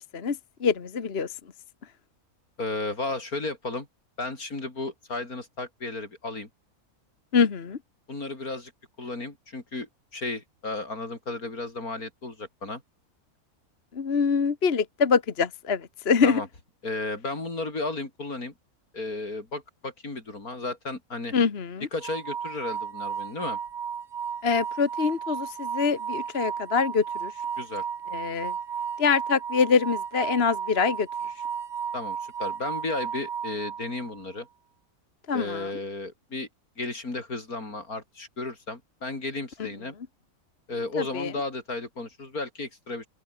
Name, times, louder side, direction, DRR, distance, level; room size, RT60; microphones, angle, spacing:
voice 1, 0.0-1.3 7.3-7.8 13.9-16.4 21.3-21.9 24.4-27.3 28.1-28.5 29.0-31.1 35.3-35.7 41.0-41.3, left 5 dB, 45° left, 1.5 m, -25 dB
voice 2, 2.6-3.9 4.2-6.5 8.1-8.7 9.0-12.8 16.2-16.5 16.8-18.5 18.9-21.3 21.9-23.6 27.6-27.9 31.9-34.5 35.3-36.5 36.8-40.0 40.7-43.1, left 2 dB, 75° left, 5.3 m, -34 dB
sound 1, 22.0-34.2, right 7 dB, 75° right, 1.9 m, -34 dB
open air
omnidirectional pair, 1.6 m